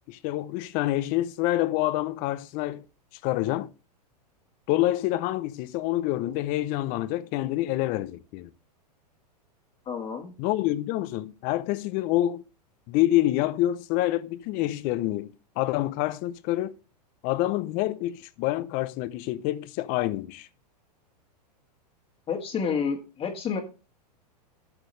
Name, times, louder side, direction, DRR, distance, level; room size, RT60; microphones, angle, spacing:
voice 1, 0.1-2.8 3.2-3.7 4.7-8.5 10.4-12.4 12.9-16.7 17.2-20.5, left 15 dB, 40° left, 0.8 m, -27 dB
voice 2, 9.8-10.3 22.3-23.6, left 6 dB, 25° left, 1.7 m, -29 dB
13.5 x 6.1 x 3.3 m
hypercardioid pair, 110°, 21 cm